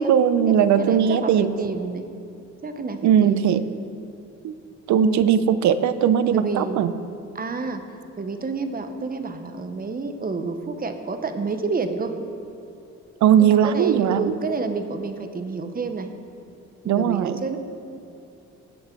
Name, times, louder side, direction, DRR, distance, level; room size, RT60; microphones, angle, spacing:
voice 1, 0.0-1.5 3.0-3.6 4.4-4.5 4.9-6.9 13.2-14.3 16.9-17.4, right 9 dB, 70° right, 13 dB, 0.6 m, -19 dB
voice 2, 0.8-2.0 2.6-3.5 4.9-5.2 6.3-6.8 7.3-7.8 8.2-12.1 13.5-16.1 16.8-17.6, right 4 dB, 30° right, 7 dB, 0.9 m, -29 dB
16.5 x 6.6 x 4.5 m, 2.8 s
cardioid pair, 90°, 30 cm